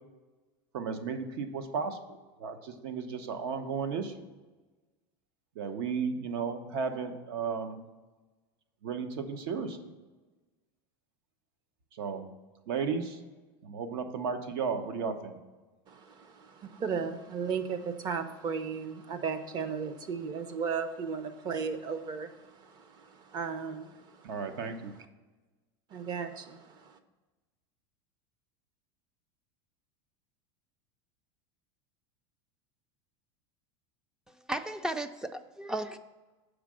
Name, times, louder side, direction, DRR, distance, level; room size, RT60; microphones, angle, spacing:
voice 1, 0.7-2.0 2.4-4.3 5.6-7.8 8.8-9.8 12.0-12.3 12.7-13.2 13.6-15.4 24.2-24.9, right 5 dB, 75° right, 8 dB, 1.0 m, -34 dB
voice 2, 15.9-24.5 25.9-27.0, right 6 dB, 35° right, 10 dB, 0.7 m, -36 dB
voice 3, 34.3-36.0, right 1 dB, 5° right, 10 dB, 0.3 m, -35 dB
7.5 x 5.0 x 6.2 m, 1.2 s
supercardioid pair, 145°, 13 cm